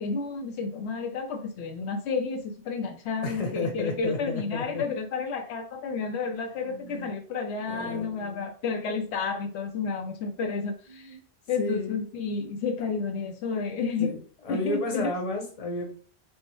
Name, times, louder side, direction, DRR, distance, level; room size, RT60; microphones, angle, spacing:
voice 1, 0.0-11.2 11.5-14.2 14.5-15.1, left 4 dB, 80° left, 5 dB, 0.9 m, -31 dB
voice 2, 3.2-4.8 6.6-7.1 7.7-8.4 10.9-11.2 11.6-12.0 14.0-14.2 14.4-15.9, left 2 dB, 35° left, 2 dB, 0.9 m, -32 dB
4.5 x 2.1 x 3.0 m, 0.42 s
omnidirectional pair, 1.1 m